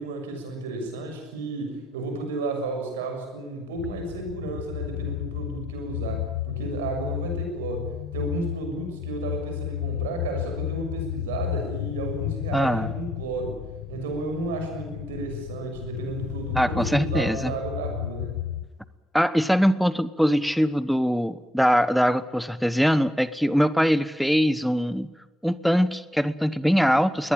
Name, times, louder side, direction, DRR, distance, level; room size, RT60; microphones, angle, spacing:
voice 1, 0.0-13.6 13.9-18.4, right 3 dB, 80° right, 4 dB, 6.7 m, -32 dB
sound 1, 3.8-18.7, left 14 dB, 75° left, 1.1 m, -33 dB
voice 2, 12.5-12.9 16.5-17.5 19.1-25.1 25.4-27.3, equal, ahead, 16 dB, 1.0 m, -22 dB
22.5 x 18.5 x 8.8 m, 1.2 s
hypercardioid pair, 70°, 0 cm